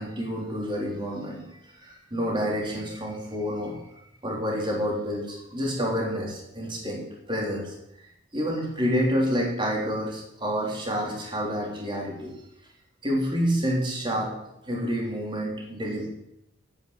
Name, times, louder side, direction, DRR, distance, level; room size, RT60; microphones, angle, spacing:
voice 1, 0.0-1.4 1.8-3.8 4.2-7.7 8.3-12.3 13.0-14.4 14.6-16.1, equal, 25° right, -1 dB, 3.3 m, -28 dB
9.3 x 8.9 x 8.2 m, 0.81 s
head